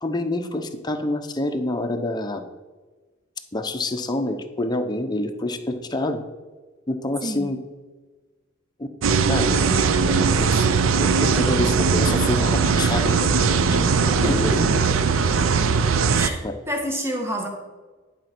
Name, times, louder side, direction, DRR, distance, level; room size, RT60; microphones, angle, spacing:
voice 1, 0.0-2.4 3.5-6.2 6.9-7.6 8.8-8.9 9.3-9.6 10.1-10.7 11.0-13.3 13.7-13.8 14.2-14.7 16.4-16.5, left 2 dB, 20° left, 6 dB, 0.7 m, -27 dB
sound 1, 9.0-16.3, right 5 dB, 85° right, 0.6 m, -20 dB
voice 2, 14.1-14.6 16.1-16.4 16.7-17.5, equal, 15° right, 0 dB, 1.6 m, -27 dB
10.5 x 4.4 x 6.0 m, 1.3 s
head